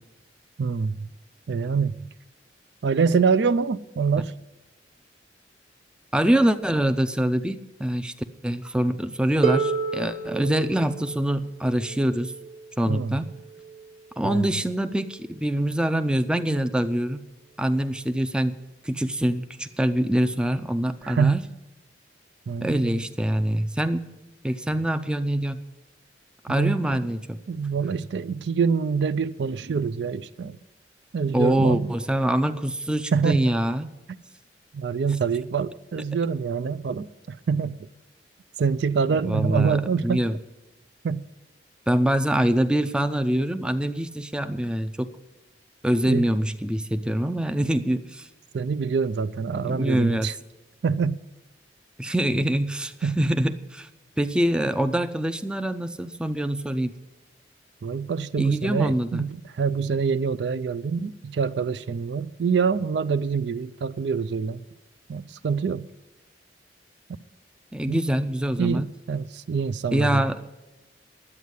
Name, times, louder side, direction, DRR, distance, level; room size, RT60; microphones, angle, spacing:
voice 1, 0.6-1.0 1.5-1.9 2.8-4.3 12.9-13.1 14.2-14.4 21.0-21.4 22.5-23.0 26.6-27.0 27.5-30.6 31.1-31.9 33.1-33.5 34.7-37.8 38.6-40.2 41.0-41.3 46.1-46.3 48.5-50.3 50.8-51.2 53.0-53.2 57.8-64.6 65.1-65.9 67.9-68.0 68.6-70.2, right 5 dB, 65° right, 0.4 m, -25 dB
voice 2, 6.1-8.1 8.4-12.3 12.8-13.3 14.2-17.2 17.6-18.5 18.8-21.4 22.6-24.0 24.4-25.7 26.5-27.4 31.3-33.9 39.2-40.4 41.9-45.1 45.8-48.3 49.6-50.3 52.0-53.9 54.2-56.9 58.4-59.2 67.7-68.9 69.9-70.5, right 1 dB, 5° right, 0.4 m, -24 dB
Harp, 9.4-15.2 16.3-16.4, right 5 dB, 30° right, 1.2 m, -31 dB
11.0 x 8.3 x 8.1 m
head